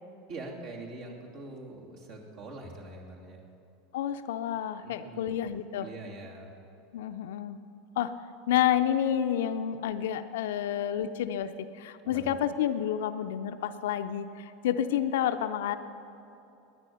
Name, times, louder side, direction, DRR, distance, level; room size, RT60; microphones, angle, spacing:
voice 1, 0.3-3.4 4.8-5.4 5.8-6.5 12.0-12.3, right 2 dB, 60° right, -2 dB, 2.8 m, -43 dB
voice 2, 3.9-5.9 6.9-7.6 8.0-8.1 8.5-15.8, left 10 dB, 65° left, 10 dB, 0.6 m, -29 dB
19.5 x 9.7 x 5.6 m, 2.9 s
figure-of-eight pair, 80°, 0 cm